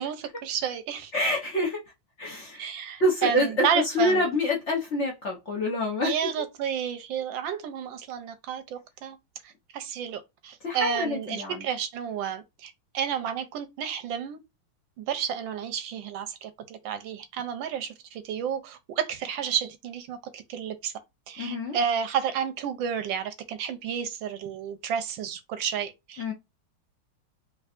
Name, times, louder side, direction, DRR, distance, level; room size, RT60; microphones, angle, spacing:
voice 1, 0.0-1.1 2.6-4.3 6.0-9.2 9.7-14.4 15.0-20.9 21.3-26.3, right 8 dB, 75° right, 1.2 m, -31 dB
voice 2, 1.1-1.8 2.2-2.6 3.0-6.2 10.6-11.6 21.4-21.8 26.2-26.3, left 1 dB, 55° left, 0.8 m, -26 dB
3.5 x 3.1 x 2.4 m
omnidirectional pair, 2.3 m